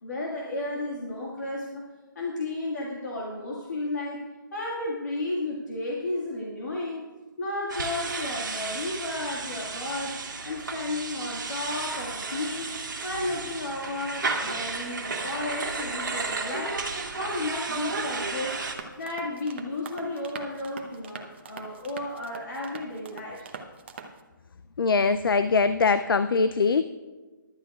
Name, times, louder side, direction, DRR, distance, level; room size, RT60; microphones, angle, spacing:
voice 1, 0.0-1.8 2.2-4.2 4.5-7.1 7.4-10.2 10.4-12.7 13.0-16.8 17.1-18.6 19.0-23.5, left 2 dB, 55° left, -3 dB, 1.8 m, -33 dB
sound 1, 7.7-18.7, right 3 dB, 60° right, 1.7 m, -33 dB
sound 2, 18.7-24.2, right 5 dB, 30° right, 0.7 m, -43 dB
voice 2, 24.8-26.8, left 4 dB, 85° left, 12 dB, 0.4 m, -22 dB
17.5 x 11.5 x 2.3 m, 1.3 s
hypercardioid pair, 170°, 11 cm